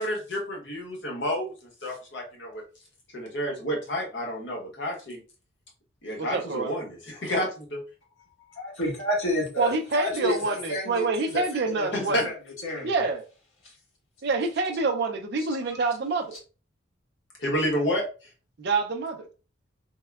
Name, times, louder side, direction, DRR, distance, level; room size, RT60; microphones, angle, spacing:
voice 1, 0.0-1.5 1.8-2.6 3.1-5.2 6.0-7.8 11.9-12.2 17.4-18.0, equal, 55° left, 1.0 m, -29 dB
voice 2, 6.2-6.7 9.6-12.3 12.8-13.2 14.2-16.4 18.6-19.3, right 3 dB, 55° right, 0.4 m, -27 dB
voice 3, 8.5-12.3 12.6-12.9 13.6-13.7 15.7-15.8, left 1 dB, 75° left, 1.2 m, -31 dB
3.6 x 2.1 x 2.2 m
head